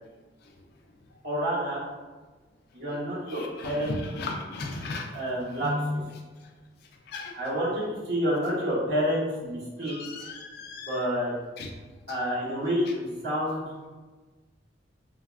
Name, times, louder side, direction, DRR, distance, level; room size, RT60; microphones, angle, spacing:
voice 1, 1.2-1.8 2.7-4.0 5.1-5.7 7.4-10.0 10.8-11.3 12.1-13.7, equal, 60° right, -7 dB, 1.0 m, -28 dB
voice 2, 3.3-5.2 5.6-6.0 7.1-7.3 9.8-11.0 11.6-11.7 12.1-12.2 12.8-12.9, left 2 dB, 55° left, 2 dB, 0.3 m, -35 dB
3.3 x 2.3 x 2.3 m, 1.3 s
head